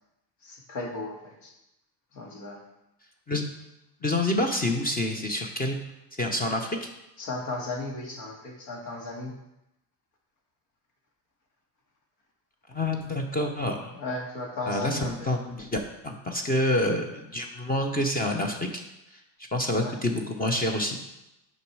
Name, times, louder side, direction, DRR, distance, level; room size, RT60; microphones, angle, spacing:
voice 1, 0.4-1.5 2.1-2.6 7.2-9.3 13.9-15.3 19.7-20.0, left 2 dB, 65° left, 1 dB, 2.2 m, -35 dB
voice 2, 4.0-5.8 6.2-6.9 12.7-13.9 14.7-18.8 19.1-19.2 19.5-21.0, left 1 dB, 20° left, 4 dB, 0.8 m, -27 dB
6.9 x 5.4 x 4.7 m, 0.89 s
hypercardioid pair, 95°, 49 cm